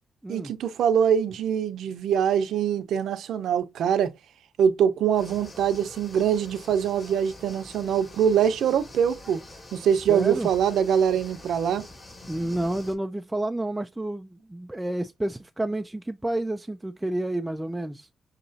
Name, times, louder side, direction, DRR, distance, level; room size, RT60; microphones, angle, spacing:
voice 1, 0.3-4.1 4.6-9.4 9.7-11.8, right 8 dB, 90° right, 0.7 m, -23 dB
sound 1, 5.1-12.9, left 2 dB, 30° left, 2.6 m, -46 dB
voice 2, 10.1-10.5 12.3-18.1, right 1 dB, 10° right, 0.4 m, -30 dB
6.6 x 2.9 x 2.6 m
cardioid pair, 105°, 0 cm